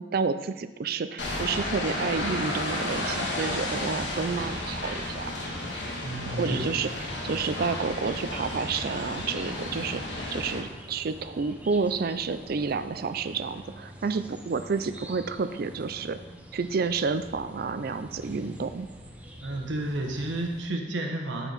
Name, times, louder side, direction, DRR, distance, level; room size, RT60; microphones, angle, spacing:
voice 1, 0.0-5.3 6.2-10.0 10.3-16.2 16.5-18.9, right 5 dB, 50° right, 11 dB, 0.4 m, -30 dB
sound 1, 1.2-10.6, left 1 dB, 65° left, 1.7 m, -32 dB
voice 2, 6.0-6.7 19.4-21.5, right 1 dB, 70° right, 3 dB, 1.2 m, -31 dB
sound 2, 6.9-20.7, equal, 10° right, 0.7 m, -46 dB
12.5 x 4.6 x 4.0 m, 1.1 s
head